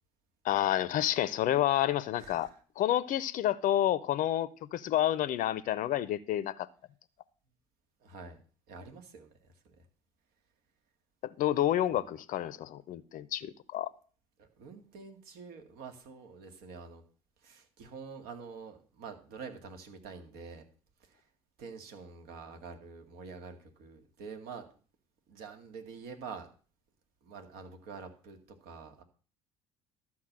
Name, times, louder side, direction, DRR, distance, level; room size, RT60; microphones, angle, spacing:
voice 1, 0.4-2.5 2.8-6.7 11.4-13.9, left 12 dB, 50° left, 0.7 m, -29 dB
voice 2, 2.1-2.6 8.0-8.4 8.7-9.9 12.0-12.1 14.4-17.0 17.4-20.6 21.0-21.3 21.6-24.7 25.3-26.5 27.2-29.0, right 5 dB, 60° right, 2.2 m, -47 dB
12.5 x 5.9 x 7.4 m
figure-of-eight pair, 55°, 18 cm